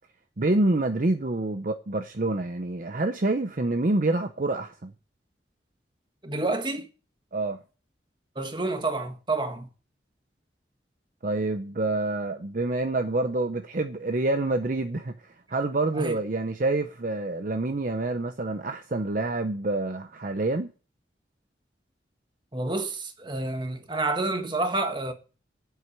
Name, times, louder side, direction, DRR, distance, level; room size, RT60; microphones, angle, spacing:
voice 1, 0.4-4.9 7.3-7.6 11.2-15.1 15.5-20.7, right 2 dB, 45° right, 0.7 m, -27 dB
voice 2, 6.2-6.9 8.3-9.7 15.9-16.2 22.5-25.1, right 2 dB, 25° right, 1.4 m, -29 dB
8.1 x 7.9 x 8.6 m
head